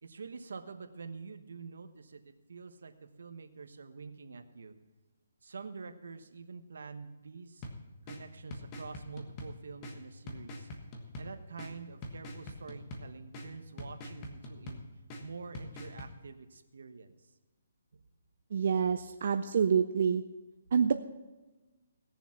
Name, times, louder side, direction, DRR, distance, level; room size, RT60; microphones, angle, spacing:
voice 1, 0.0-4.7 5.4-7.7 8.1-10.7 11.2-14.8 15.2-17.2 17.9-18.0, right 4 dB, 75° right, 8 dB, 1.2 m, -47 dB
sound 1, 7.6-16.1, left 1 dB, 25° left, 1.4 m, -46 dB
voice 2, 18.5-20.2 20.7-20.9, right 6 dB, 50° right, 6 dB, 0.5 m, -27 dB
17.5 x 7.0 x 5.8 m, 1.2 s
hypercardioid pair, 165°, 0 cm